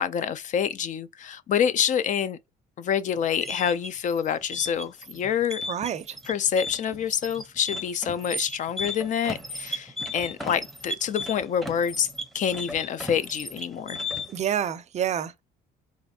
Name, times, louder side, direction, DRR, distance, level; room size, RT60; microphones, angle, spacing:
voice 1, 0.0-2.4 2.8-5.6 6.3-12.1 12.3-14.0, left 8 dB, 50° left, 0.4 m, -27 dB
sound 1, 3.3-14.5, left 2 dB, ahead, 0.7 m, -35 dB
voice 2, 5.7-6.2 14.3-15.4, right 9 dB, 40° right, 0.5 m, -28 dB
4.2 x 2.4 x 2.7 m
cardioid pair, 110°, 17 cm